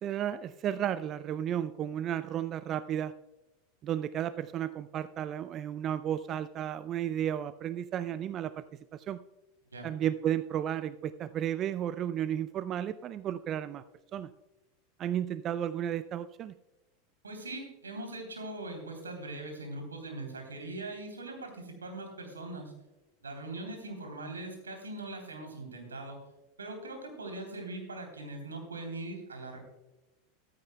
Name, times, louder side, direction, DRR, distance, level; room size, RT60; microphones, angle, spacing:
voice 1, 0.0-3.1 3.8-8.6 8.9-9.2 9.8-13.8 14.1-14.3 15.0-16.5, right 10 dB, 40° right, 14 dB, 0.4 m, -33 dB
voice 2, 17.2-22.7 23.2-26.2 26.6-29.6, right 2 dB, 85° right, 3 dB, 3.1 m, -41 dB
14.5 x 12.5 x 2.2 m, 1.0 s
hypercardioid pair, 90°, 0 cm